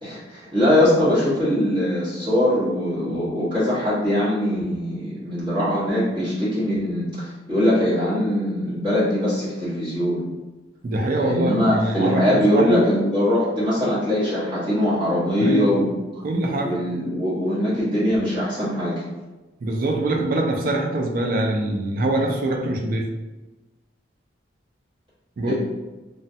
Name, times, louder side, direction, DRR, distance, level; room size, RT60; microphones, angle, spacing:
voice 1, 0.0-10.2 11.1-15.9 16.6-18.9 25.4-25.5, left 1 dB, 25° right, -11 dB, 1.1 m, -22 dB
voice 2, 10.8-12.8 15.4-15.7 16.2-16.8 19.6-23.1 25.4-25.5, right 1 dB, 50° right, 2 dB, 0.4 m, -24 dB
3.2 x 2.2 x 2.6 m, 1.1 s
head